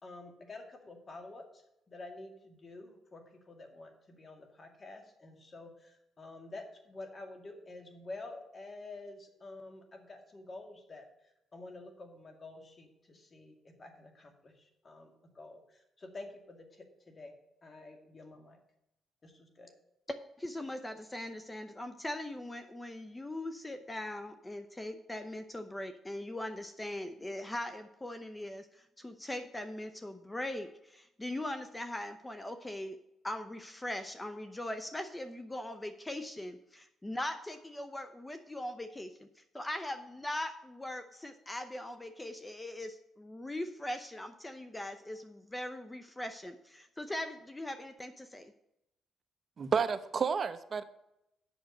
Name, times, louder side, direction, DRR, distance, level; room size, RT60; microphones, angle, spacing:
voice 1, 0.0-11.0 11.5-17.3 17.6-18.6 19.2-19.7, left 2 dB, 35° left, 4 dB, 2.1 m, -49 dB
voice 2, 20.1-33.0 33.2-48.5, left 1 dB, 15° left, 8 dB, 0.7 m, -40 dB
voice 3, 49.6-50.8, right 6 dB, 45° right, 11 dB, 0.8 m, -30 dB
8.2 x 6.2 x 6.6 m, 0.85 s
cardioid pair, 90°, 0 cm